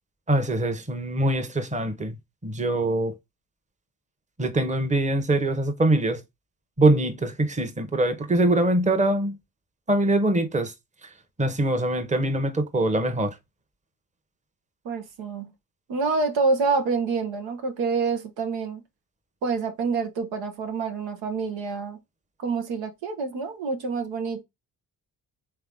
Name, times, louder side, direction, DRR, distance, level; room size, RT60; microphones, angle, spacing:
voice 1, 0.3-2.2 2.4-3.2 4.4-6.2 6.8-9.4 9.9-10.7 11.0-13.4, right 1 dB, 15° right, 1.0 m, -23 dB
voice 2, 14.8-15.5 15.9-18.8 19.4-22.0 22.4-24.4, right 4 dB, 75° right, 1.0 m, -27 dB
3.5 x 3.4 x 3.6 m
hypercardioid pair, 50°, 45 cm